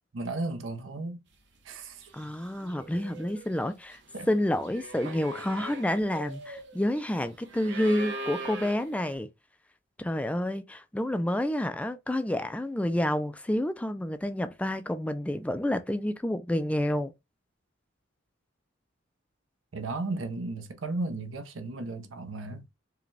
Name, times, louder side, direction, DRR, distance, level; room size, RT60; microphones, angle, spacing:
voice 1, 0.1-1.2 1.6-2.0 4.1-4.3 5.0-5.1 19.7-22.7, right 2 dB, 80° right, 0.7 m, -34 dB
sound 1, 1.6-1.7 2.0-9.2, right 2 dB, 65° right, 1.0 m, -42 dB
voice 2, 2.1-4.0 4.3-9.3 10.0-17.1, left 1 dB, 5° left, 0.3 m, -29 dB
4.8 x 2.2 x 3.2 m
head